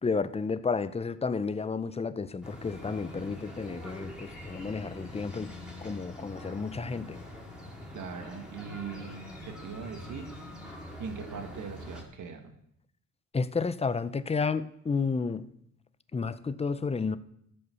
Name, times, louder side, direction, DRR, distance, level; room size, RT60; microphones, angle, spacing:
voice 1, 0.0-5.5 5.8-7.2 13.3-15.5 16.1-17.2, left 4 dB, 20° left, 0.6 m, -31 dB
sound 1, 2.4-12.0, left 1 dB, 5° right, 3.0 m, -44 dB
sound 2, 4.3-6.1 9.0-11.0, left 3 dB, 50° left, 1.9 m, -56 dB
voice 2, 7.9-10.3 11.0-12.6, right 6 dB, 70° right, 1.8 m, -40 dB
14.0 x 5.5 x 6.9 m
cardioid pair, 90°, 31 cm